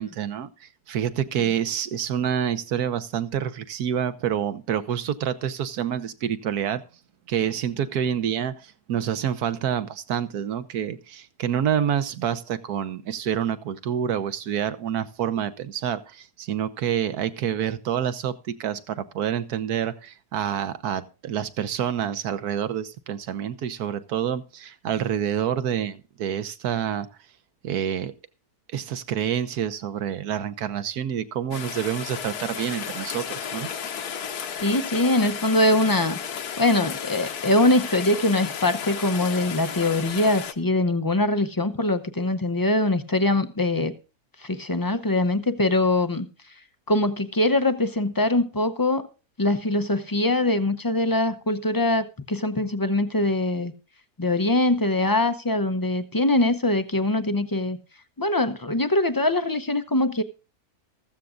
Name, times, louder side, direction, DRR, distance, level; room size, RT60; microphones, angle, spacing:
voice 1, 0.0-6.8 7.3-27.1 27.6-28.1 28.7-33.7, right 9 dB, 75° right, 1.4 m, -27 dB
Rain, 31.5-40.5, left 7 dB, 75° left, 1.5 m, -33 dB
voice 2, 34.6-36.2 36.6-43.9 44.4-46.3 46.9-49.1 49.4-53.7 54.2-57.8 58.2-60.2, left 2 dB, 35° left, 0.3 m, -23 dB
15.0 x 14.5 x 2.5 m
omnidirectional pair, 1.7 m